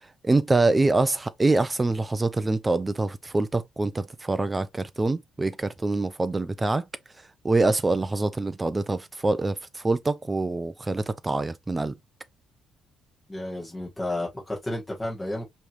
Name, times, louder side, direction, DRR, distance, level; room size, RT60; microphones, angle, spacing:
voice 1, 0.2-6.8 7.4-11.9, right 2 dB, 15° right, 0.5 m, -25 dB
voice 2, 13.3-15.4, left 1 dB, 5° left, 1.6 m, -32 dB
5.1 x 3.1 x 2.5 m
cardioid pair, 160°, 0 cm